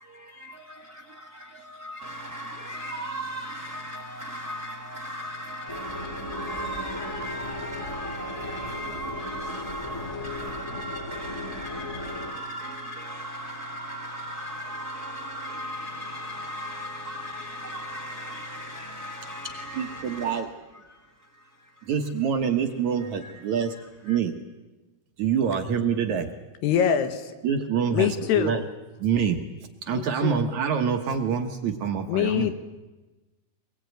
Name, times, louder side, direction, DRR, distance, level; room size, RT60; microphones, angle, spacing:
voice 1, 0.0-22.1 22.9-24.2, equal, 45° right, 1.2 m, -37 dB
sound 1, 5.7-12.3, left 2 dB, 10° left, 1.7 m, -37 dB
voice 2, 19.8-20.5 21.8-23.7 24.0-24.4 25.2-26.3 27.4-28.6 29.0-29.4 29.8-32.5, right 7 dB, 60° right, 2.1 m, -26 dB
voice 3, 26.6-27.3 27.9-28.6 29.9-30.4 32.1-32.5, left 9 dB, 85° left, 3.7 m, -24 dB
24.0 x 21.0 x 9.3 m
omnidirectional pair, 4.6 m